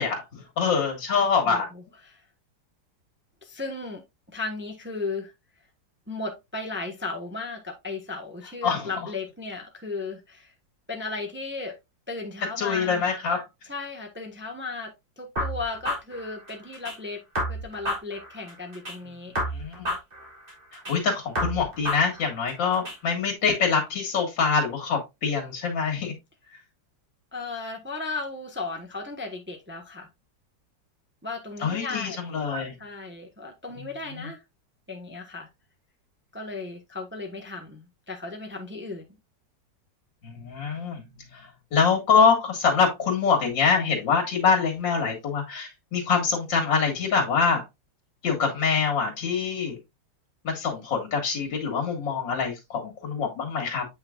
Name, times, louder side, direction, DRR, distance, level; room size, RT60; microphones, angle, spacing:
voice 1, 0.0-1.7 8.6-8.9 12.6-13.5 19.3-19.9 20.7-26.1 31.6-32.7 33.8-33.9 34.2-34.3 40.2-47.6 48.2-49.8 50.4-53.9, left 5 dB, 80° left, 2.5 m, -25 dB
voice 2, 1.4-2.2 3.4-4.0 4.3-5.3 6.1-10.5 10.9-11.8 12.1-13.0 13.7-17.2 17.5-19.3 27.3-30.1 31.2-32.2 32.8-34.4 34.9-35.5 36.3-39.0, left 3 dB, 10° right, 0.7 m, -35 dB
sound 1, 15.4-17.0 17.3-19.0 19.3-21.0 21.3-23.0, equal, 30° right, 3.1 m, -31 dB
7.7 x 5.8 x 2.4 m
omnidirectional pair, 2.0 m